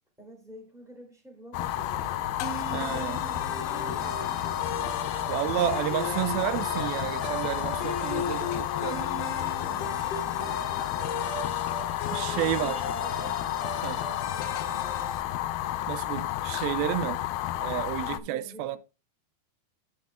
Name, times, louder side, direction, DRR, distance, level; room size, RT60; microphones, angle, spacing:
voice 1, 0.2-2.2 2.6-4.8 9.6-11.4 12.3-13.4 13.7-15.2 18.1-18.8, right 1 dB, ahead, 2.1 m, -48 dB
Fire, 1.5-18.2, left 14 dB, 85° left, 2.2 m, -31 dB
sound 1, 1.6-8.6, right 1 dB, 40° right, 2.4 m, -47 dB
sound 2, 2.4-15.2, left 3 dB, 70° left, 1.6 m, -37 dB
voice 2, 2.7-3.2 5.3-8.5 8.8-9.1 12.1-12.8 13.8-14.0 15.9-17.2 17.6-18.8, right 14 dB, 85° right, 2.1 m, -31 dB
12.5 x 6.3 x 2.4 m
omnidirectional pair, 4.8 m